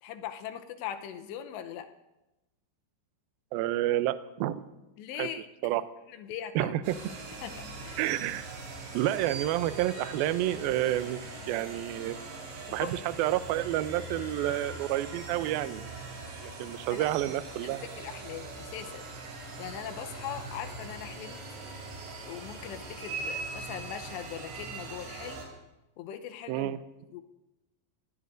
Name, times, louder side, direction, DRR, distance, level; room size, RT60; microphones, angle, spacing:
voice 1, 0.0-1.9 5.0-5.4 6.1-6.7 7.4-8.0 12.7-12.9 16.9-17.1 17.8-19.0 19.6-21.4 22.3-25.4 26.0-26.7 27.1-27.2, left 10 dB, 90° left, 7 dB, 3.0 m, -40 dB
voice 2, 3.5-4.6 5.2-5.3 5.6-5.8 6.6-6.8 8.0-8.5 8.9-11.2 11.5-12.2 12.7-15.8 16.4-17.9 26.5-26.8, right 14 dB, 90° right, 12 dB, 2.1 m, -29 dB
sound 1, 6.8-25.5, right 3 dB, 70° right, 5.1 m, -41 dB
25.0 x 17.5 x 2.6 m, 0.99 s
omnidirectional pair, 5.0 m